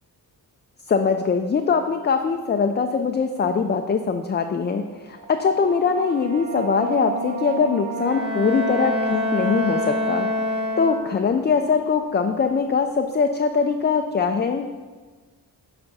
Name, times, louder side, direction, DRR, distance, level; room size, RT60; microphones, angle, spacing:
voice 1, 0.9-14.6, left 5 dB, 25° left, 5 dB, 0.4 m, -22 dB
sound 1, 5.0-12.2, right 5 dB, 85° right, 0.9 m, -34 dB
Bowed string instrument, 8.0-11.4, left 1 dB, 25° right, 1.7 m, -26 dB
8.0 x 3.4 x 5.4 m, 1.4 s
cardioid pair, 70°, 40 cm